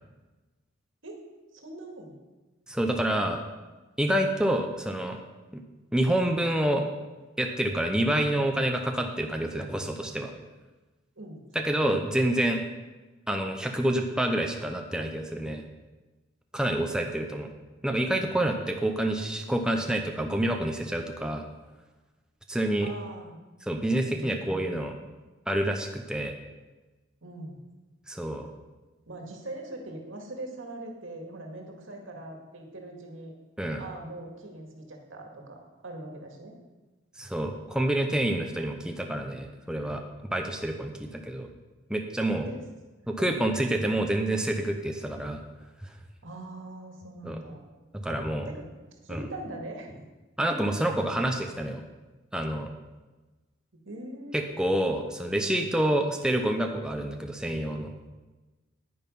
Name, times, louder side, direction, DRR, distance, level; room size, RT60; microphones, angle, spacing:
voice 1, 1.5-2.2 11.2-11.4 16.9-17.5 22.8-23.4 24.1-24.7 27.2-27.6 29.1-33.3 33.8-35.6 35.8-36.5 42.4-42.6 43.2-43.5 46.2-47.6 48.5-48.7 49.0-50.0 50.5-50.8 51.1-51.2 53.9-54.9, right 1 dB, 75° right, 2 dB, 2.1 m, -41 dB
voice 2, 2.7-3.4 4.0-5.2 5.5-5.6 5.9-6.9 7.4-10.3 11.5-12.6 13.3-15.6 16.5-17.5 17.8-21.4 22.5-22.9 23.7-24.9 25.5-26.3 28.1-28.5 33.6-33.8 37.2-40.0 40.3-41.5 41.9-42.5 43.1-45.4 47.2-47.4 47.9-48.5 49.1-49.2 50.4-51.8 52.3-52.7 54.3-57.9, right 1 dB, 5° right, 3 dB, 0.7 m, -28 dB
10.0 x 9.6 x 5.4 m, 1.2 s
head